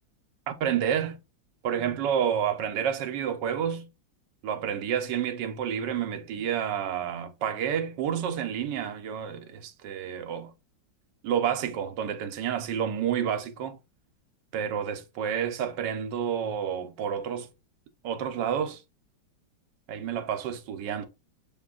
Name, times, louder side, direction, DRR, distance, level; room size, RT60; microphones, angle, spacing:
voice 1, 0.5-1.2 1.6-3.9 4.4-10.5 11.2-13.8 14.5-17.5 18.0-18.8 19.9-21.1, right 8 dB, 75° right, 1.2 m, -29 dB
7.2 x 2.5 x 2.3 m
omnidirectional pair, 2.0 m